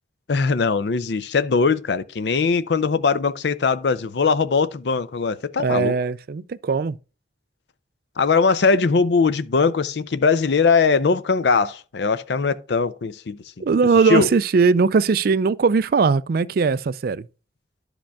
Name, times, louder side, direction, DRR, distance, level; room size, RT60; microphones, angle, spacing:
voice 1, 0.3-5.9 8.2-13.6 14.1-14.3, left 4 dB, 75° left, 0.5 m, -20 dB
voice 2, 5.6-7.0 13.6-17.3, right 4 dB, 55° right, 0.4 m, -19 dB
11.5 x 5.0 x 3.4 m
head